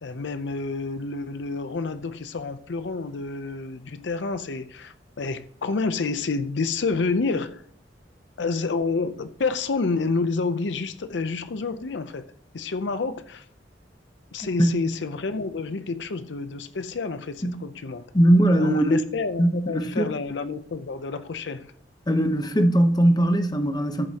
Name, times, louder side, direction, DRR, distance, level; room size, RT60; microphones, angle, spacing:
voice 1, 0.0-7.6 8.4-12.3 12.5-13.4 14.3-18.1 18.6-21.7, left 4 dB, 75° left, 0.6 m, -29 dB
voice 2, 18.1-19.0 19.4-20.1 22.1-24.0, right 1 dB, 20° left, 0.9 m, -20 dB
14.0 x 7.5 x 2.9 m
head